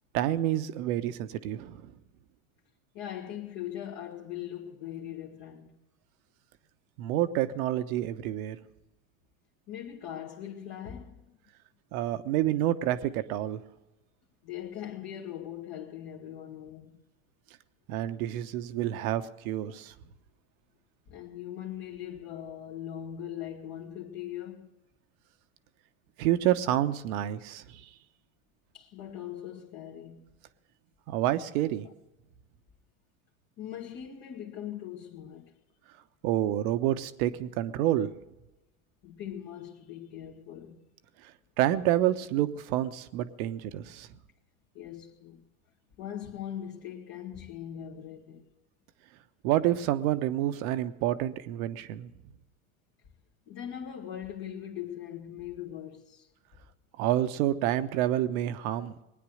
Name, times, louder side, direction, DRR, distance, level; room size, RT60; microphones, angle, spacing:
voice 1, 0.1-1.9 7.0-8.6 11.9-13.6 17.9-19.9 26.2-27.8 31.1-31.9 36.2-38.1 41.6-44.1 49.4-52.1 57.0-58.9, right 13 dB, 70° right, 1.2 m, -28 dB
voice 2, 2.9-5.8 9.7-11.4 14.4-17.0 21.1-24.7 28.7-30.4 33.6-35.6 39.0-40.8 44.7-45.4 46.0-48.5 53.5-56.3, left 10 dB, 50° left, 1.9 m, -40 dB
20.5 x 9.8 x 6.5 m
supercardioid pair, 110°, 45 cm